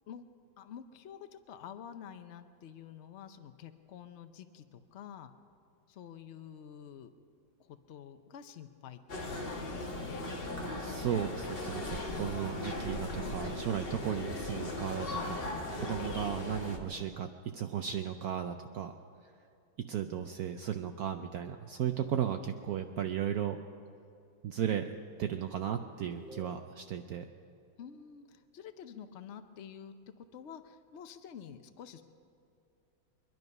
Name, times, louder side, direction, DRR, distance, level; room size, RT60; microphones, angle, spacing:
voice 1, 0.6-5.3 5.9-7.1 7.6-10.2 12.1-12.5 15.3-16.2 27.8-29.9 30.3-32.0, left 8 dB, 85° left, 9 dB, 0.6 m, -49 dB
sound 1, 9.1-16.8, left 2 dB, 30° left, 1.6 m, -38 dB
voice 2, 10.8-15.5 15.7-18.9 19.9-23.6 24.4-24.9 25.2-27.3, right 9 dB, 70° right, 7 dB, 0.9 m, -35 dB
sound 2, 26.0-27.1, left 3 dB, ahead, 2.1 m, -51 dB
23.5 x 11.0 x 5.4 m, 2.6 s
omnidirectional pair, 2.1 m